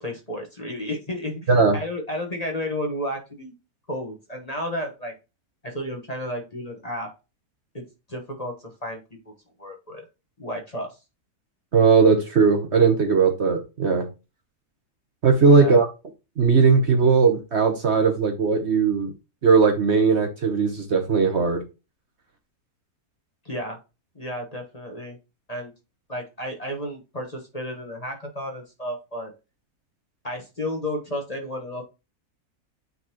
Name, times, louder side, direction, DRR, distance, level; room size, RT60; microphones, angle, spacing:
voice 1, 0.0-3.5 3.9-5.1 5.6-7.1 7.7-10.0 10.4-11.0 15.5-15.8 23.4-23.8 24.1-25.2 25.5-25.7 26.1-29.3 30.2-31.8, left 1 dB, 25° left, 1 dB, 1.2 m, -32 dB
voice 2, 1.5-1.8 11.7-14.1 15.2-15.9 16.4-19.1 19.4-21.6, right 5 dB, 50° right, 5 dB, 1.2 m, -18 dB
9.4 x 4.1 x 2.9 m, 0.28 s
omnidirectional pair, 1.7 m